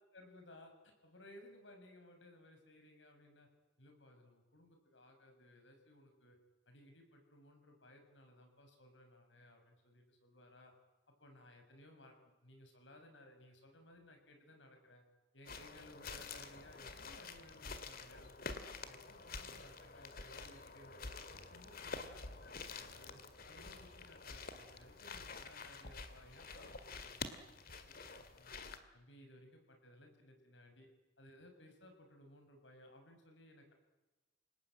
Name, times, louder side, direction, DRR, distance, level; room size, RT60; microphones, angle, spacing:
voice 1, 0.1-3.5 3.8-6.4 6.7-10.7 11.2-15.0 15.3-21.2 21.5-23.2 23.4-28.5 28.9-30.9 31.2-33.7, left 1 dB, 90° left, 5 dB, 6.8 m, -60 dB
sound 1, 15.5-28.8, left 4 dB, 55° left, 2.2 m, -49 dB
29.0 x 19.0 x 9.1 m, 1.1 s
head